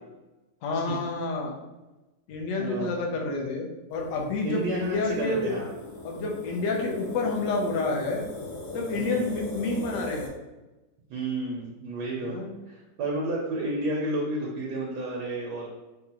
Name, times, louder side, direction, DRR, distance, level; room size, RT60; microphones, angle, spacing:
voice 1, 0.6-1.5 2.3-5.6 6.0-8.2 8.7-10.3 12.2-12.5, left 3 dB, 65° left, 0 dB, 0.8 m, -29 dB
voice 2, 2.6-3.1 4.4-5.7 9.0-9.3 11.1-12.4 12.7-15.7, right 1 dB, 80° right, -2 dB, 1.1 m, -31 dB
sound 1, 3.9-10.3, left 2 dB, 85° left, 1.3 m, -40 dB
3.6 x 2.1 x 2.8 m, 1.1 s
omnidirectional pair, 1.8 m